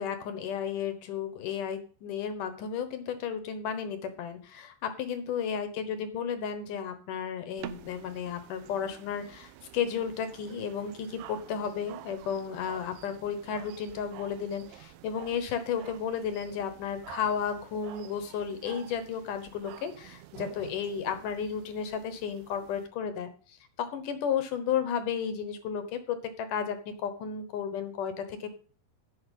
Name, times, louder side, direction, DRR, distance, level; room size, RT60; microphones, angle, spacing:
voice 1, 0.0-28.5, left 7 dB, 65° left, 9 dB, 2.3 m, -33 dB
sound 1, 7.6-22.9, right 14 dB, 85° right, 2.8 m, -49 dB
10.0 x 5.8 x 8.3 m, 0.41 s
omnidirectional pair, 4.6 m